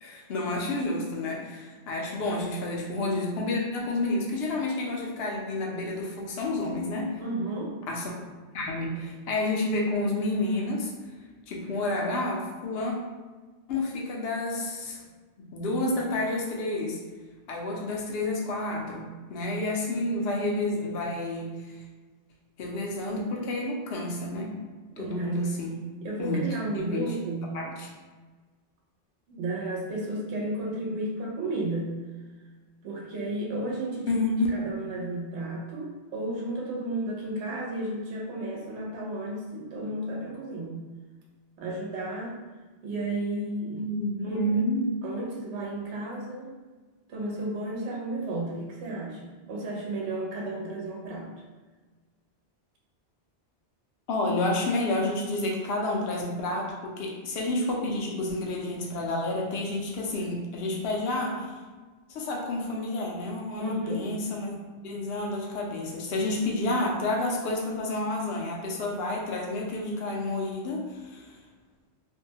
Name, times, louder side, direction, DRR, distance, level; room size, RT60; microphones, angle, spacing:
voice 1, 0.0-7.2 7.9-8.1 8.5-10.9 11.5-13.0 13.7-15.1 15.4-17.0 17.5-21.8 22.6-24.6 25.0-25.8 26.2-26.5 26.7-27.1 27.5-27.9 34.1-34.5 43.8-44.9 54.1-61.5 62.1-64.5 64.8-71.3, left 2 dB, 70° left, -1 dB, 0.8 m, -30 dB
voice 2, 7.2-7.7 25.0-25.4 26.0-27.5 29.3-31.9 32.8-34.2 34.5-40.8 41.6-42.4 42.8-43.8 44.2-44.6 45.0-46.5 47.1-51.3 63.6-64.1, right 2 dB, 80° right, -3 dB, 0.9 m, -33 dB
2.6 x 2.2 x 2.7 m, 1.3 s
omnidirectional pair, 1.1 m